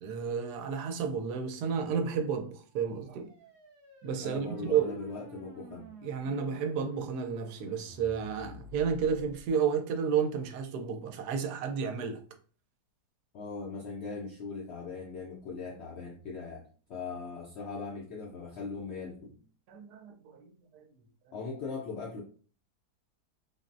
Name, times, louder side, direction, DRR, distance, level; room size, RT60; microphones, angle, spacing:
voice 1, 0.0-3.3 4.0-4.9 6.0-12.2 19.7-20.4 20.7-20.9, right 6 dB, 85° right, 1.1 m, -31 dB
sound 1, 2.6-9.5, right 2 dB, 60° right, 0.5 m, -51 dB
voice 2, 4.2-5.9 13.3-19.4 21.3-22.2, left 4 dB, 75° left, 0.6 m, -40 dB
3.6 x 2.0 x 2.5 m
omnidirectional pair, 1.7 m